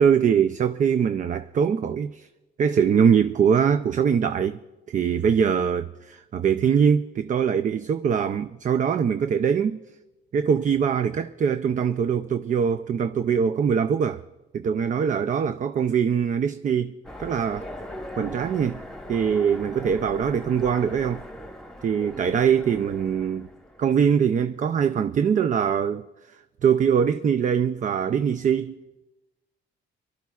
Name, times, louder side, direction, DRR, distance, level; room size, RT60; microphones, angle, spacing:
voice 1, 0.0-2.3 2.6-4.6 4.9-9.8 10.3-14.2 14.5-17.7 18.2-18.8 19.1-21.2 21.8-23.5 23.8-26.0 26.6-28.8, right 7 dB, 40° right, 0.4 m, -22 dB
Train, 17.0-24.0, left 1 dB, 5° left, 1.2 m, -40 dB
28.5 x 12.0 x 2.3 m
cardioid pair, 90°, 20 cm